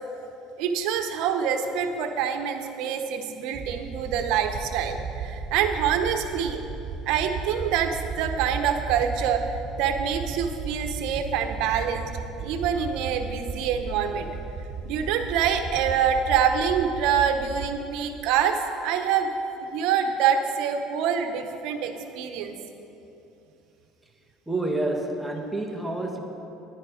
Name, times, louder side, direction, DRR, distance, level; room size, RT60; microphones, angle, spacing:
voice 1, 0.6-6.6 7.1-9.5 9.8-12.1 12.4-14.3 14.8-19.3 19.7-22.6, right 8 dB, 75° right, 6 dB, 0.9 m, -25 dB
sound 1, 3.5-17.7, right 5 dB, 45° right, 2.8 m, -35 dB
voice 2, 24.5-26.2, right 2 dB, 5° right, 2 dB, 1.2 m, -28 dB
10.5 x 10.0 x 5.0 m, 2.9 s
cardioid pair, 115°, 0 cm